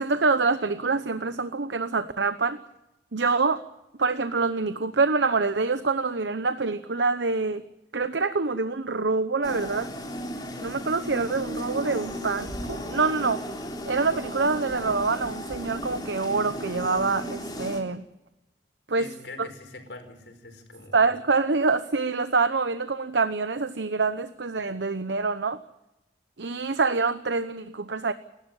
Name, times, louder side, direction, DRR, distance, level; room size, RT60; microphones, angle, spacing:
voice 1, 0.0-2.6 3.1-3.6 4.0-7.6 7.9-9.9 10.6-13.4 13.9-18.0 18.9-19.1 19.4-19.5 20.9-25.6 26.4-28.1, right 4 dB, 80° right, 12 dB, 0.9 m, -26 dB
sound 1, 9.4-17.8, equal, 25° left, 3.7 m, -35 dB
voice 2, 19.0-21.1, left 2 dB, 75° left, 6 dB, 4.9 m, -43 dB
29.0 x 12.5 x 9.0 m, 0.92 s
head